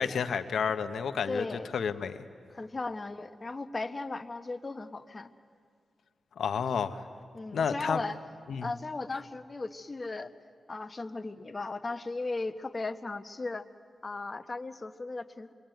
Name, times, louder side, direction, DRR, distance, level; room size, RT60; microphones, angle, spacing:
voice 1, 0.0-1.4 1.7-2.2 6.4-7.0 7.5-8.0 8.5-8.7, left 6 dB, 80° left, 9 dB, 1.1 m, -30 dB
voice 2, 1.3-1.7 2.5-5.3 7.3-8.2 8.6-10.3 10.7-13.7 14.0-15.5, left 3 dB, 40° left, 9 dB, 1.2 m, -36 dB
26.5 x 22.5 x 9.2 m, 2.1 s
cardioid pair, 55°, 0 cm